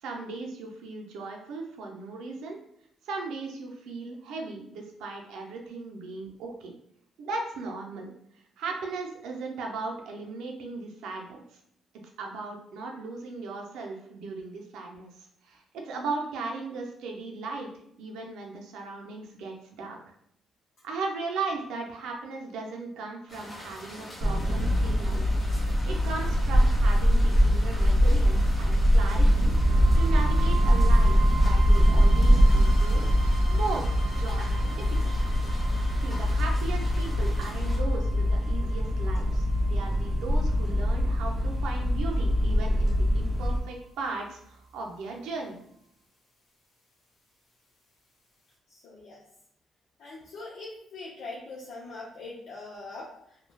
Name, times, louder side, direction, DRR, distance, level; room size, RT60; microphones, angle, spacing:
voice 1, 0.0-2.6 3.0-6.7 7.2-8.1 8.6-11.4 12.2-17.7 18.0-20.0 20.8-25.3 25.9-29.5 30.0-33.0 33.5-35.2 36.0-45.6, right 3 dB, 85° right, 1 dB, 0.5 m, -37 dB
sound 1, 23.3-37.8, left 1 dB, 25° left, 1.2 m, -44 dB
sound 2, 24.2-43.6, equal, 35° right, 1.0 m, -23 dB
sound 3, 29.2-43.2, right 3 dB, 50° left, 1.1 m, -36 dB
voice 2, 48.7-49.2 50.0-53.4, left 3 dB, 75° left, -5 dB, 0.5 m, -42 dB
3.2 x 2.2 x 2.2 m, 0.72 s
cardioid pair, 90°, 0 cm